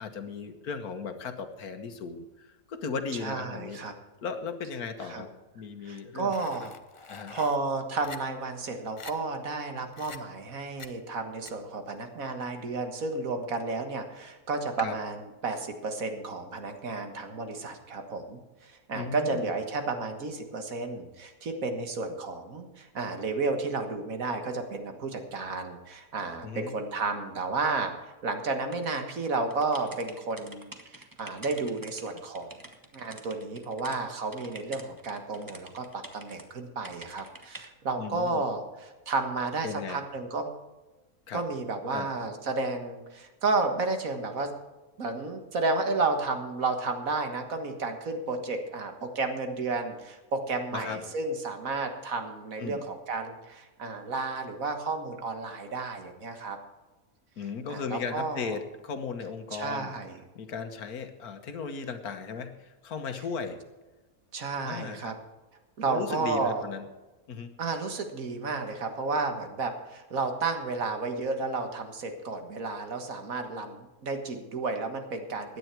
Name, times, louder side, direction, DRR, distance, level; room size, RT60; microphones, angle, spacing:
voice 1, 0.0-3.8 4.2-6.7 7.1-7.3 14.8-15.0 18.9-19.5 26.4-26.7 38.0-38.4 39.6-40.0 41.3-41.4 41.9-42.1 50.7-51.0 52.6-52.8 57.4-59.9 60.3-63.6 64.6-65.2 65.8-66.9 67.3-67.5, left 5 dB, 80° left, 8 dB, 1.7 m, -36 dB
voice 2, 3.2-3.9 5.0-5.2 5.9-6.7 7.3-32.6 32.9-40.5 41.3-44.5 45.0-56.6 57.7-58.6 59.5-60.2 64.3-65.1 65.8-66.6 67.6-75.6, right 3 dB, 65° right, 6 dB, 1.9 m, -32 dB
sound 1, 6.3-7.6 8.0-8.2 8.6-8.7 9.0-9.1 9.9-10.2 10.8-10.9 11.5-11.6, left 5 dB, 35° left, 0.5 m, -44 dB
sound 2, 28.7-34.0 34.3-36.4 36.8-37.7, right 2 dB, 15° right, 1.0 m, -47 dB
16.5 x 10.0 x 4.6 m, 1.2 s
omnidirectional pair, 1.6 m